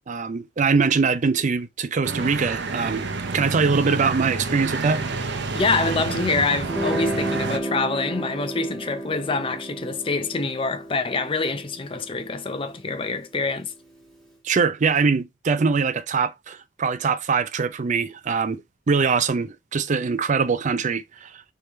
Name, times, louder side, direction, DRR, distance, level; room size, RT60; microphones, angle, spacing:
voice 1, 0.1-3.1 3.3-5.1 14.4-21.4, right 5 dB, 40° right, 0.4 m, -23 dB
sound 1, 2.0-7.6, right 3 dB, 60° right, 0.7 m, -29 dB
voice 2, 5.5-13.7, left 3 dB, 25° left, 0.5 m, -26 dB
Guitar, 6.6-13.7, right 1 dB, ahead, 1.5 m, -33 dB
3.4 x 3.2 x 4.1 m
head